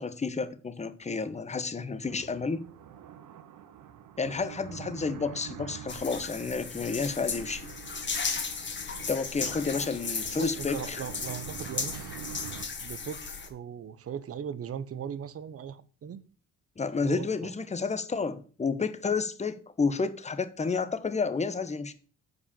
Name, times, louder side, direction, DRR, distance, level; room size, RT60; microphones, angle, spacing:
voice 1, 0.0-2.6 4.2-7.7 9.1-11.0 16.8-21.9, left 4 dB, 20° left, 1.0 m, -30 dB
sound 1, 2.0-12.7, right 10 dB, 80° right, 1.2 m, -46 dB
sound 2, 5.9-13.5, left 5 dB, 40° left, 1.9 m, -35 dB
voice 2, 10.3-12.2 12.8-16.2 17.0-17.5, right 8 dB, 50° right, 0.9 m, -39 dB
8.4 x 4.8 x 7.0 m
cardioid pair, 90°, 30 cm